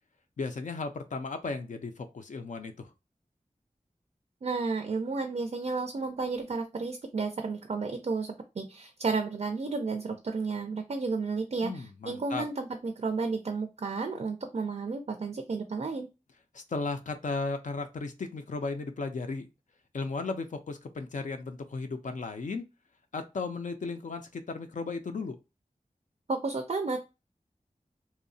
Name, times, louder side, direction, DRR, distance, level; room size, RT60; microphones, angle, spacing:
voice 1, 0.4-2.9 11.6-12.4 16.5-19.5 19.9-22.7 23.1-25.4, left 3 dB, 70° left, 6 dB, 0.4 m, -35 dB
voice 2, 4.4-16.1 26.3-27.0, right 4 dB, 55° right, 5 dB, 0.4 m, -32 dB
2.7 x 2.0 x 2.6 m, 0.27 s
wide cardioid pair, 70°, 13 cm